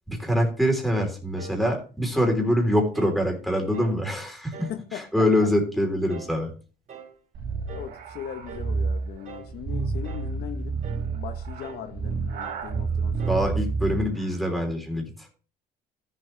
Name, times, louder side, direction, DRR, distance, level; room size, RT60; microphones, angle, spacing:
voice 1, 0.1-6.5 13.2-15.3, equal, ahead, 3.3 m, -24 dB
sound 1, 1.4-1.7 2.1-2.4 2.9-3.2 3.7-4.0 4.5-4.8 5.3-5.6 6.1-6.4 6.9-7.2 7.7-8.0 8.5-8.8 9.3-9.6 10.0-10.4 10.8-11.1 11.6-11.9 12.4-12.7 13.2-13.5, right 7 dB, 45° right, 2.1 m, -44 dB
voice 2, 4.7-5.3 7.7-10.8 11.1-13.2, left 9 dB, 70° left, 1.0 m, -39 dB
sound 2, 7.4-14.2, right 4 dB, 65° right, 2.5 m, -29 dB
13.5 x 7.5 x 3.2 m
cardioid pair, 110°, 17 cm